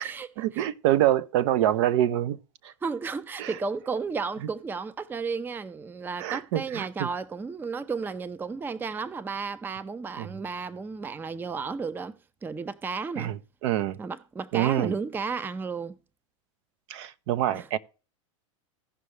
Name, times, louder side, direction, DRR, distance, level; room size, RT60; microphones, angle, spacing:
voice 1, 0.0-2.4 2.6-2.7 3.4-3.5 6.2-7.1 10.2-10.3 13.2-14.0 14.5-14.9 16.9-17.8, right 12 dB, 60° right, 0.8 m, -26 dB
voice 2, 2.8-12.2 12.4-13.3 14.0-15.9 17.5-17.7, right 5 dB, 10° right, 0.5 m, -33 dB
16.0 x 5.6 x 3.2 m
hypercardioid pair, 120°, 17 cm